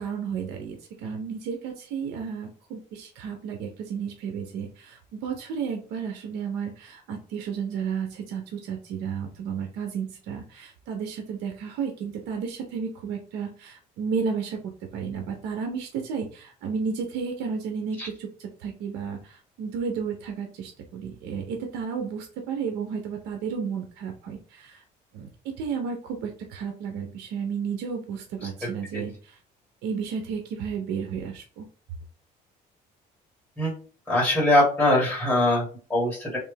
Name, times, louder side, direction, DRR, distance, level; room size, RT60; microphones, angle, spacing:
voice 1, 0.0-24.8 25.1-29.4 29.8-31.7, right 6 dB, 90° right, 4 dB, 0.7 m, -32 dB
voice 2, 34.1-36.4, left 1 dB, 5° left, -5 dB, 1.9 m, -22 dB
3.3 x 2.9 x 3.3 m, 0.40 s
cardioid pair, 110°, 17 cm